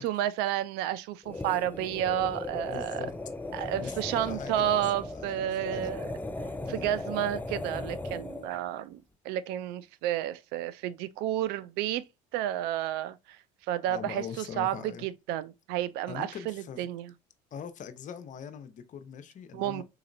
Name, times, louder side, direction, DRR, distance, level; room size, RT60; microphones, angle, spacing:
voice 1, 0.0-3.0 3.5-6.1 6.7-12.0 12.3-13.4 13.7-17.1 19.5-19.8, right 12 dB, 70° right, 0.4 m, -31 dB
sound 1, 1.2-8.6, left 2 dB, 10° left, 0.4 m, -37 dB
voice 2, 2.7-3.1 3.8-4.8 5.1-5.9 6.6-7.0 13.9-15.1 16.1-16.9 17.5-19.8, left 7 dB, 45° left, 0.7 m, -42 dB
3.9 x 2.8 x 2.5 m
hypercardioid pair, 75°, 18 cm